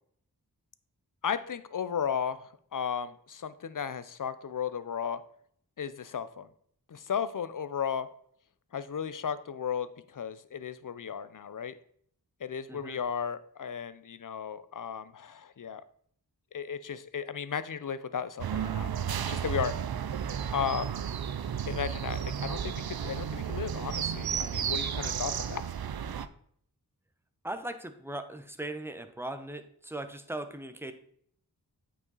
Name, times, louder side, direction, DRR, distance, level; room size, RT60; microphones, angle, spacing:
voice 1, 1.2-5.2 5.8-6.5 6.9-8.1 8.7-11.7 12.4-15.8 16.5-19.8 20.5-20.9 21.7-25.6, left 7 dB, 55° left, 14 dB, 0.6 m, -35 dB
voice 2, 12.7-13.0 27.4-30.9, right 1 dB, 5° right, 8 dB, 0.8 m, -39 dB
sound 1, 18.4-26.3, right 8 dB, 65° right, 0.5 m, -33 dB
8.8 x 4.8 x 4.0 m, 0.63 s
wide cardioid pair, 55°, 39 cm